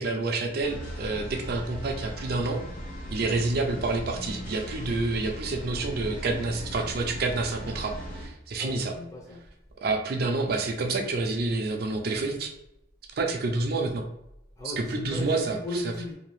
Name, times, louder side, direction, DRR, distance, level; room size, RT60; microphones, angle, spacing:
voice 1, 0.0-2.6 3.1-8.9 9.8-12.5 13.1-14.1 14.6-15.6, right 3 dB, 50° right, 3 dB, 0.4 m, -28 dB
sound 1, 0.6-8.3, right 1 dB, 40° left, 0.9 m, -38 dB
voice 2, 8.6-9.4 14.6-16.1, left 1 dB, 15° left, -2 dB, 0.6 m, -36 dB
2.7 x 2.3 x 3.0 m, 0.84 s
head